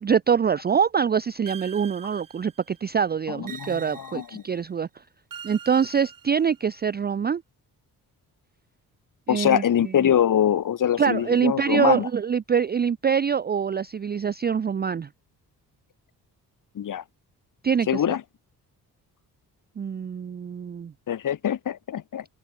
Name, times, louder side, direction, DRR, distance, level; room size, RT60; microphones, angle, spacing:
voice 1, 0.0-4.9 5.4-7.4 9.3-10.1 11.0-15.1 17.6-18.0 19.8-20.9, right 7 dB, 25° right, 0.5 m, -24 dB
sound 1, 1.5-2.8 3.5-4.6 5.3-6.8, right 8 dB, 55° right, 3.1 m, -44 dB
voice 2, 3.3-4.4 9.3-12.1 16.7-17.0 17.9-18.2 21.1-22.2, left 9 dB, 55° left, 1.2 m, -24 dB
open air
cardioid pair, 65°, 38 cm